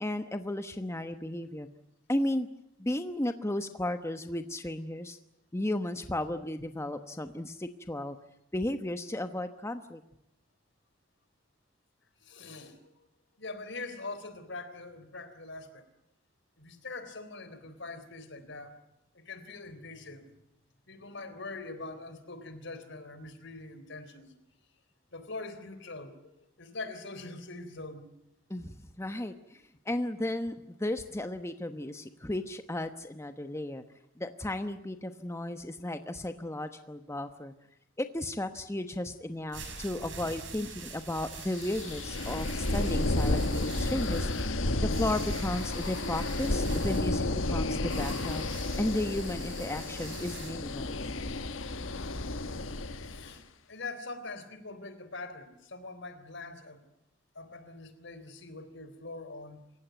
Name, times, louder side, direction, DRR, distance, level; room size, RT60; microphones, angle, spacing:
voice 1, 0.0-1.7 2.1-2.5 2.8-5.2 5.5-8.2 8.5-10.0 28.5-33.8 34.2-37.5 38.0-48.5 48.8-51.0, left 1 dB, 15° left, 8 dB, 1.1 m, -34 dB
voice 2, 12.2-12.9 13.4-15.9 16.6-18.8 19.1-20.3 20.9-24.3 25.1-28.1 53.0-53.4 53.7-56.8 57.4-59.6, left 3 dB, 65° left, 12 dB, 3.8 m, -43 dB
sound 1, 39.3-50.5, right 5 dB, 70° right, 6.4 m, -46 dB
sound 2, 41.5-53.3, left 2 dB, 90° left, 1.4 m, -32 dB
sound 3, 47.9-50.3, right 6 dB, 50° right, 7.3 m, -57 dB
28.0 x 16.0 x 9.3 m, 0.88 s
head